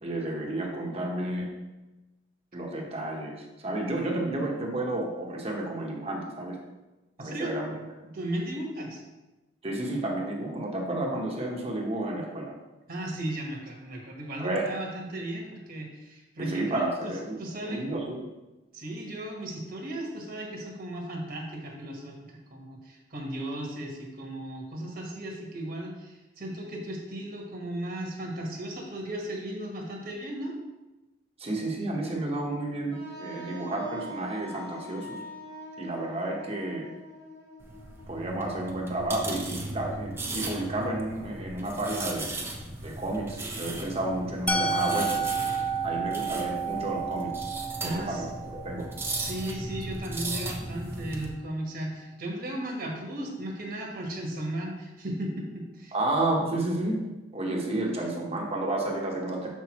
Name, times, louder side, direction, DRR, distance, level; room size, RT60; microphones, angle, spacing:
voice 1, 0.0-1.5 2.5-6.6 7.2-7.7 9.6-12.5 14.4-14.7 16.4-17.4 17.6-18.3 31.4-35.2 35.8-36.9 38.1-42.3 42.8-45.3 45.8-47.3 47.8-48.9 55.9-57.0 57.3-59.5, right 1 dB, 35° right, -1 dB, 1.1 m, -31 dB
voice 2, 7.2-7.5 8.0-9.0 12.9-17.8 18.7-30.6 47.8-48.2 49.2-55.9, right 1 dB, 55° right, 0 dB, 1.4 m, -36 dB
Wind instrument woodwind instrument, 32.9-38.7, equal, 55° left, 2.0 m, -44 dB
sound 1, 37.6-51.2, right 2 dB, 15° right, 0.8 m, -37 dB
Musical instrument, 44.5-50.4, right 4 dB, 10° left, 0.4 m, -32 dB
6.7 x 6.0 x 3.0 m, 1.1 s
head